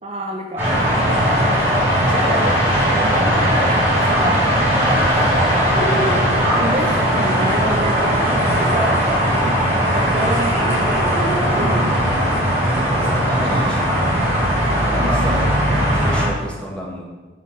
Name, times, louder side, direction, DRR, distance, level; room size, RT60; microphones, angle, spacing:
voice 1, 0.0-0.7 1.3-1.6 2.3-5.6 6.6-9.0 9.9-11.0 11.5-12.1 14.7-15.2, right 1 dB, 35° right, 1 dB, 0.6 m, -28 dB
sound 1, 0.6-16.3, equal, 10° right, 2.6 m, -18 dB
voice 2, 2.1-2.6 7.7-7.9 8.5-8.9 12.9-13.9 14.6-17.0, equal, 5° left, -3 dB, 1.5 m, -30 dB
sound 2, 3.4-12.3, equal, 50° left, 1.1 m, -32 dB
7.5 x 5.7 x 5.7 m, 1.3 s
head